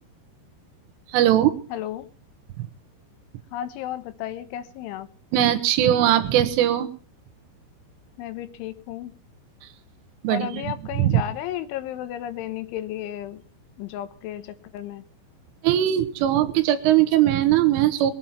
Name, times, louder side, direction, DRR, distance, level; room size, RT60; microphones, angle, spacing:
voice 1, 1.1-1.5 2.6-2.7 5.3-6.9 9.6-9.7 10.2-11.2 15.6-18.1, right 12 dB, 90° right, 10 dB, 3.9 m, -20 dB
voice 2, 1.7-2.1 3.5-5.1 8.2-9.1 10.3-13.4 13.8-15.1, left 11 dB, 80° left, 11 dB, 3.4 m, -33 dB
22.0 x 9.3 x 5.8 m, 0.42 s
omnidirectional pair, 5.6 m